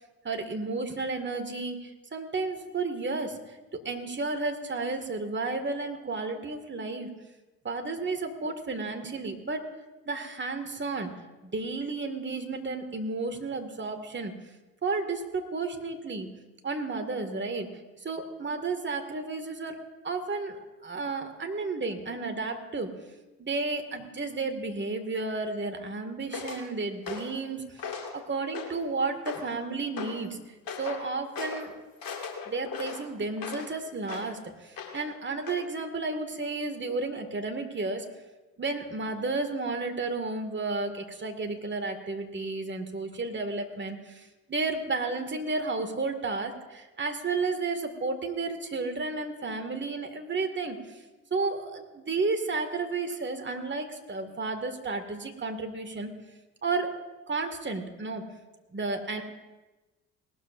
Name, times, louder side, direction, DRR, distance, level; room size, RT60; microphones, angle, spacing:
voice 1, 0.2-3.4 3.8-7.1 7.6-9.7 10.1-11.1 11.4-14.3 14.8-16.3 16.6-17.7 18.0-19.8 20.0-22.9 23.4-27.6 28.1-30.4 30.8-31.7 32.5-38.1 38.6-51.0 51.3-56.1 56.6-57.0 57.3-58.3 58.7-59.2, right 3 dB, 25° right, 5 dB, 2.0 m, -32 dB
sound 1, 26.3-26.6 27.1-27.4 27.8-28.2 28.5-28.9 29.3-29.6 30.0-30.2 30.7-31.0 31.3-31.7 32.0-33.7 34.1-34.3 34.8-35.1 35.5-35.6, left 6 dB, 50° left, 2.3 m, -38 dB
19.0 x 13.0 x 2.6 m, 1.1 s
hypercardioid pair, 50°, 42 cm